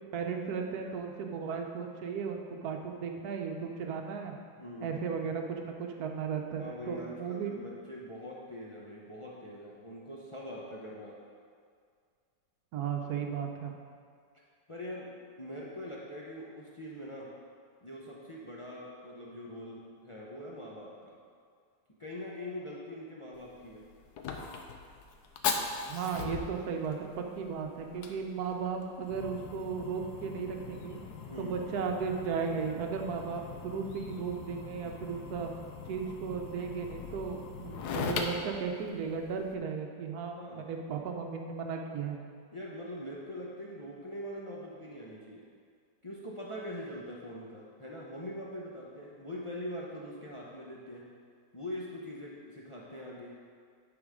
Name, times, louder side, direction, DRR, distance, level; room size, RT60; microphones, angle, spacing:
voice 1, 0.1-4.3 4.8-7.6 12.7-13.7 25.9-31.0 31.4-35.5 35.9-42.2, right 6 dB, 65° right, 3 dB, 1.2 m, -35 dB
voice 2, 4.6-5.0 6.6-11.2 14.7-15.1 15.4-17.3 17.8-21.2 22.0-23.8 31.3-31.6 40.3-40.7 42.5-45.5 46.0-51.1 51.5-53.3, equal, 50° left, -5 dB, 0.3 m, -43 dB
Fire, 23.3-39.5, left 5 dB, 70° left, 1.1 m, -40 dB
9.8 x 4.0 x 5.0 m, 2.2 s
omnidirectional pair, 1.9 m